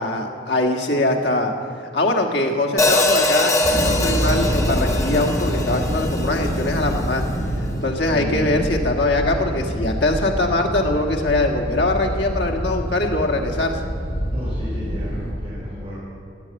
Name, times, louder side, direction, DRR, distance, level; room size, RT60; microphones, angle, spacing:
voice 1, 0.0-1.5 1.9-7.2 7.6-13.8, left 2 dB, 65° left, 1 dB, 1.8 m, -22 dB
Hi-hat, 2.8-7.0, left 2 dB, 15° left, 1.1 m, -22 dB
sound 1, 3.6-15.3, equal, 50° left, 4.8 m, -26 dB
voice 2, 8.0-8.7 14.3-15.9, left 1 dB, 35° right, -10 dB, 4.8 m, -33 dB
16.5 x 8.3 x 8.8 m, 2.5 s
head